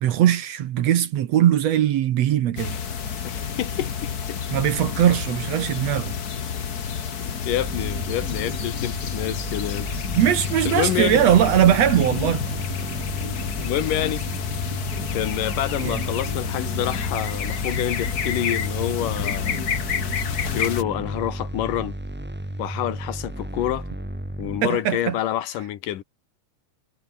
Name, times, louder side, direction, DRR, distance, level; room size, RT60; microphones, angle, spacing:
voice 1, 0.0-2.8 4.5-6.2 10.1-12.4 15.8-16.0 24.6-25.2, right 11 dB, 65° right, 2.0 m, -20 dB
sound 1, 2.6-20.8, left 7 dB, 45° left, 1.4 m, -29 dB
voice 2, 3.2-4.4 7.5-9.9 10.6-11.2 13.6-14.2 15.1-19.6 20.5-21.9 22.6-23.9 24.4-26.0, left 12 dB, 90° left, 3.1 m, -27 dB
sound 2, 7.5-24.6, right 1 dB, 5° right, 0.8 m, -33 dB
omnidirectional pair, 3.7 m